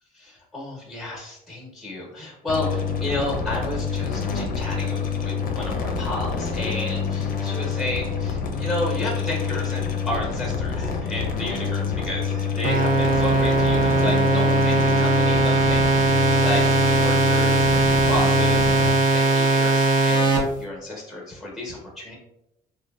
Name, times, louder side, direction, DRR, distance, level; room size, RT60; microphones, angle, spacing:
voice 1, 0.1-18.9 19.1-22.2, left 1 dB, ahead, -2 dB, 0.9 m, -32 dB
sound 1, 2.5-18.9, left 6 dB, 55° left, 0.5 m, -27 dB
sound 2, 12.6-20.4, right 3 dB, 50° right, 0.7 m, -19 dB
2.8 x 2.2 x 2.3 m, 0.85 s
cardioid pair, 110°, 17 cm